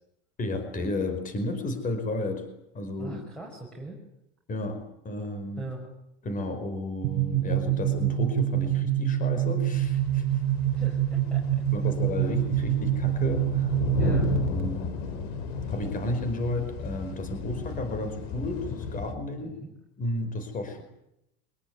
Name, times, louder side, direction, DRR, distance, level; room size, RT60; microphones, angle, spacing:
voice 1, 0.4-2.5 2.7-3.2 4.5-5.6 6.2-10.3 11.7-13.8 14.0-14.2 14.5-14.8 15.7-19.5 20.0-20.8, left 2 dB, 25° left, 8 dB, 5.1 m, -32 dB
voice 2, 3.0-4.0 5.6-5.9 10.7-11.6 14.0-14.3 19.3-19.7, right 2 dB, 5° left, 0 dB, 5.9 m, -41 dB
sound 1, 7.0-14.6, right 11 dB, 60° right, 1.9 m, -26 dB
sound 2, 9.7-19.1, left 5 dB, 85° left, 4.7 m, -34 dB
24.5 x 21.0 x 9.6 m, 0.82 s
cardioid pair, 155°, 31 cm